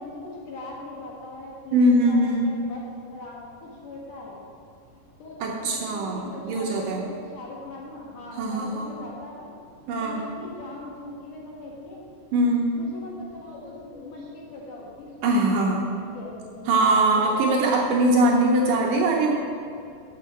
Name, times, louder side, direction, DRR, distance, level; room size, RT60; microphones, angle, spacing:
voice 1, 0.0-4.4 4.8-9.5 9.8-12.0 12.7-17.5 18.4-18.8, left 2 dB, 65° left, -3 dB, 2.6 m, -40 dB
voice 2, 1.7-2.5 5.4-7.0 8.4-8.9 9.9-10.2 12.3-12.7 15.2-15.9 16.7-19.3, right 1 dB, 75° right, -1 dB, 2.1 m, -21 dB
6.7 x 6.6 x 7.6 m, 2.4 s
omnidirectional pair, 4.4 m